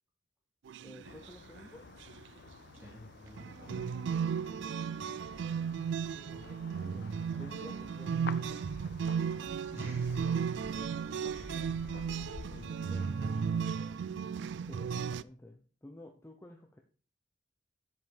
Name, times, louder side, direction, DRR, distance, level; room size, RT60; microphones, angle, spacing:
sound 1, 0.7-1.3 1.6-1.7 2.0-2.2 3.4-15.2, right 6 dB, 70° right, 0.3 m, -35 dB
voice 1, 0.8-1.9 6.1-8.6 14.6-16.8, left 1 dB, 15° left, 3 dB, 0.7 m, -52 dB
sound 2, 1.0-13.7, left 5 dB, 60° left, 0.4 m, -50 dB
voice 2, 2.7-3.8 9.7-10.5 11.3-13.5, equal, 10° right, -1 dB, 2.7 m, -51 dB
7.6 x 5.1 x 5.4 m, 0.40 s
head